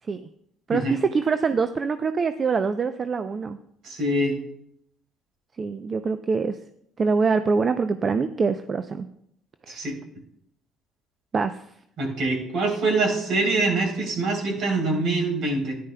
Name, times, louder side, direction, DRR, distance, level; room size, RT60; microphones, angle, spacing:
voice 1, 0.7-3.6 5.6-6.6 7.0-9.1 9.7-9.8 11.3-11.6, right 5 dB, 40° right, 9 dB, 0.5 m, -24 dB
voice 2, 3.8-4.3 9.7-9.9 12.0-15.8, right 2 dB, 60° right, 1 dB, 3.5 m, -24 dB
13.0 x 10.5 x 2.2 m, 0.73 s
supercardioid pair, 70°, 0 cm